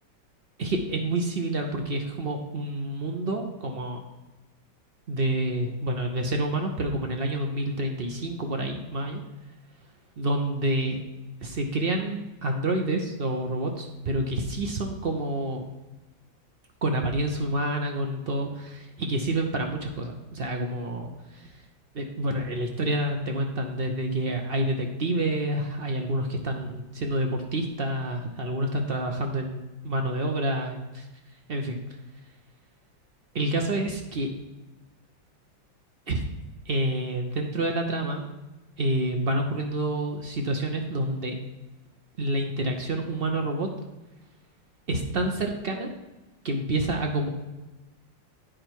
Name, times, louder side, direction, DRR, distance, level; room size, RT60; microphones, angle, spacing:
voice 1, 0.6-4.0 5.1-9.2 10.2-11.0 11.4-15.7 16.8-21.5 21.9-31.1 31.5-31.8 33.3-34.3 36.1-36.2 36.7-38.3 38.8-41.4 42.2-43.7 44.9-45.9 46.4-47.3, right 1 dB, 60° right, 3 dB, 0.6 m, -28 dB
10.0 x 5.0 x 4.5 m, 1.1 s
omnidirectional pair, 2.1 m